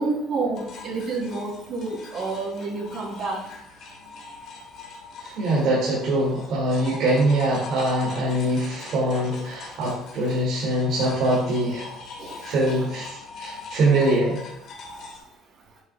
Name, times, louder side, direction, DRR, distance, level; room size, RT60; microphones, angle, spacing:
voice 1, 0.0-3.4 12.2-12.3 12.7-12.9, right 3 dB, 50° right, -2 dB, 2.5 m, -29 dB
sound 1, 0.5-15.2, left 4 dB, 60° left, 1.8 m, -41 dB
voice 2, 5.2-11.9 12.4-14.4, right 1 dB, 65° right, -6 dB, 2.1 m, -23 dB
8.2 x 5.6 x 2.2 m, 0.82 s
cardioid pair, 120°, 0 cm